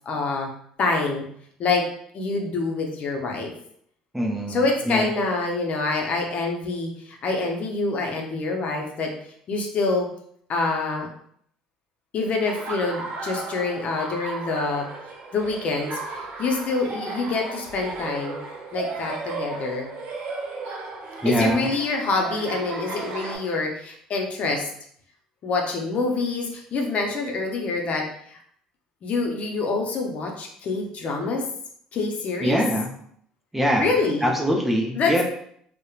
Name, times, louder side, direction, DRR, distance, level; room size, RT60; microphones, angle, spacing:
voice 1, 0.1-0.5 0.8-1.2 1.6-1.8 2.1-3.5 4.5-9.1 9.5-10.1 10.5-11.1 12.1-14.9 15.3-18.4 18.7-19.9 21.2-24.7 25.4-28.4 29.0-31.4 31.9-32.6 33.7-34.3 35.0-35.1, left 3 dB, 50° left, 1 dB, 0.6 m, -26 dB
voice 2, 4.1-4.6 4.9-5.1 21.2-21.7 32.4-32.9 33.5-33.9 34.2-35.2, equal, 10° right, -1 dB, 0.6 m, -22 dB
Laughter, 12.5-23.4, right 3 dB, 60° right, 0.6 m, -35 dB
2.8 x 2.1 x 2.3 m, 0.67 s
supercardioid pair, 70°, 3 cm